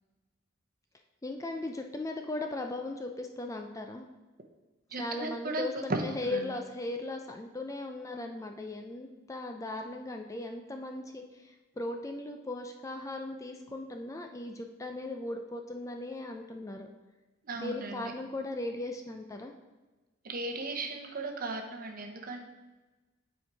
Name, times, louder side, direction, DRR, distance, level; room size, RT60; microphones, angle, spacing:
voice 1, 1.2-4.1 4.9-16.9 17.5-19.5, left 2 dB, 15° left, 4 dB, 0.4 m, -38 dB
voice 2, 4.9-5.6 5.9-6.0 6.3-6.4 17.5-18.1 20.2-22.4, right 2 dB, 45° right, 4 dB, 0.9 m, -36 dB
8.5 x 4.5 x 4.7 m, 1.2 s
head